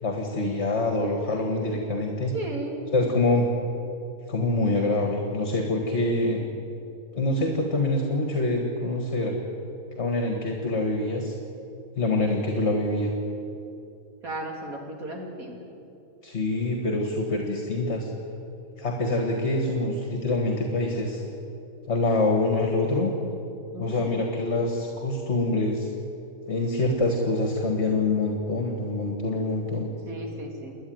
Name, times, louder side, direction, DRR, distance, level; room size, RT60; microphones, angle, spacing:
voice 1, 0.0-2.3 2.9-3.5 4.3-6.4 7.2-9.3 10.0-11.3 12.0-13.1 16.2-18.1 18.8-21.2 21.9-23.1 23.8-25.9 26.5-29.9, left 2 dB, 50° left, 2 dB, 2.1 m, -25 dB
voice 2, 2.3-2.8 14.2-15.6 23.7-24.1 30.0-30.7, right 1 dB, 80° right, 0 dB, 3.4 m, -35 dB
28.5 x 10.5 x 9.4 m, 2.7 s
omnidirectional pair, 1.5 m